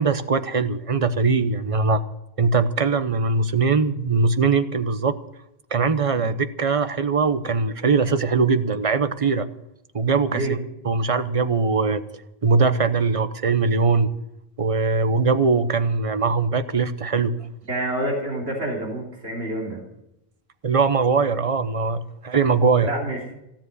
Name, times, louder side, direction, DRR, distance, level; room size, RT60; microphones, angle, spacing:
voice 1, 0.0-2.0 2.4-5.1 5.7-9.5 9.9-10.6 10.8-12.0 12.4-14.1 14.6-17.3 20.6-22.9, right 4 dB, 35° right, 11 dB, 0.9 m, -21 dB
voice 2, 17.7-19.8 22.9-23.2, right 1 dB, 90° right, -1 dB, 3.5 m, -28 dB
16.0 x 7.5 x 9.6 m, 0.85 s
omnidirectional pair, 1.1 m